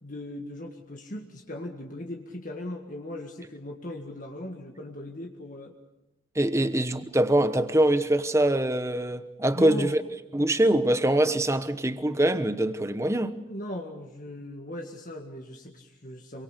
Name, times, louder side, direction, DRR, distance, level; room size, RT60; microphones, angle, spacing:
voice 1, 0.0-5.7 6.6-6.7 9.5-9.9 13.5-16.4, left 1 dB, 40° left, 1.9 m, -38 dB
voice 2, 6.3-10.0 10.3-13.3, right 1 dB, 15° right, 1.0 m, -23 dB
26.5 x 24.5 x 6.7 m
head